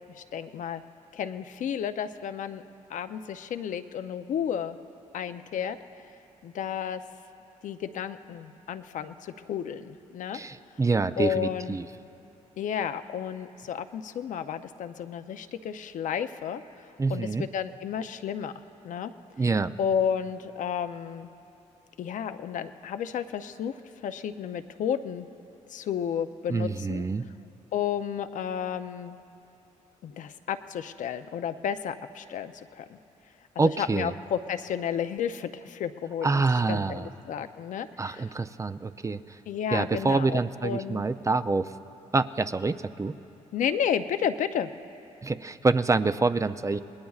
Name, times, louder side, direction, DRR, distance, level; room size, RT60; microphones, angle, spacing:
voice 1, 0.1-0.8 1.1-2.6 2.9-4.8 5.1-5.8 6.4-7.0 7.6-10.4 11.2-11.8 12.6-18.5 18.8-19.1 19.8-21.3 22.0-23.7 24.0-25.3 25.7-27.0 27.7-29.2 30.0-33.0 33.6-36.4 36.7-38.3 39.5-41.0 43.5-44.7, left 8 dB, 70° left, 9 dB, 0.6 m, -32 dB
voice 2, 10.3-11.9 17.0-17.5 19.4-19.7 26.5-27.3 33.6-34.1 36.2-37.1 38.0-39.2 39.7-41.7 42.1-43.2 45.2-46.8, right 3 dB, 25° right, 11 dB, 0.5 m, -26 dB
28.0 x 19.5 x 2.4 m, 2.8 s
supercardioid pair, 65°, 14 cm